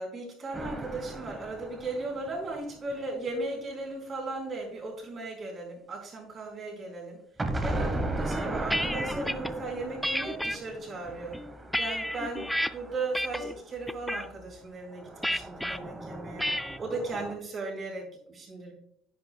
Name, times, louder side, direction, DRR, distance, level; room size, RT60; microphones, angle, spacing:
voice 1, 0.0-7.2 7.6-11.4 11.8-16.5 16.8-18.7, right 2 dB, 30° right, -1 dB, 4.2 m, -36 dB
sound 1, 0.5-3.4 7.4-13.6 14.9-17.4, right 1 dB, 15° right, 1.0 m, -37 dB
sound 2, 8.3-9.5 10.0-10.6 11.2-12.7 13.1-13.5 13.9-14.3 15.2-15.8 16.4-16.8, equal, ahead, 0.4 m, -31 dB
10.5 x 10.5 x 2.2 m, 0.68 s
cardioid pair, 155°, 0 cm